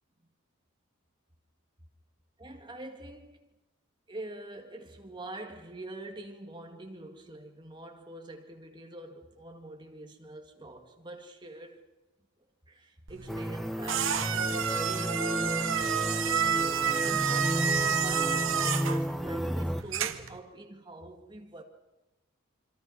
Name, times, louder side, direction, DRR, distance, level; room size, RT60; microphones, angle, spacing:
voice 1, 2.4-3.5 4.1-11.9 12.7-16.5 17.0-21.6, right 2 dB, 20° right, 2.1 m, -45 dB
sound 1, 13.1-20.4, right 7 dB, 65° right, 1.1 m, -30 dB
sound 2, 13.3-19.8, equal, ahead, 0.8 m, -32 dB
26.5 x 24.0 x 5.6 m
head